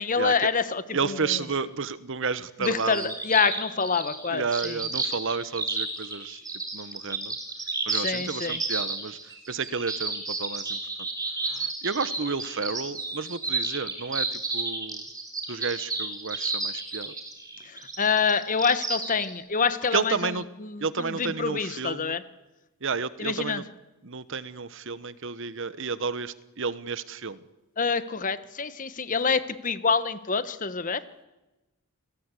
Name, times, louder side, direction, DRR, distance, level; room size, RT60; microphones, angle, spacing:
voice 1, 0.0-1.4 2.6-4.8 7.9-8.6 17.6-20.3 20.6-22.2 23.2-23.6 27.8-31.0, left 5 dB, 35° left, 13 dB, 1.1 m, -27 dB
voice 2, 0.9-3.1 4.3-6.4 6.7-7.3 7.9-9.2 9.5-11.1 11.5-15.0 15.5-17.1 19.9-20.4 20.8-22.2 22.8-23.6 24.0-27.4, right 4 dB, 60° right, 15 dB, 1.0 m, -31 dB
sound 1, 2.6-19.3, right 3 dB, 15° right, 4.1 m, -32 dB
27.0 x 19.0 x 8.3 m, 1.0 s
head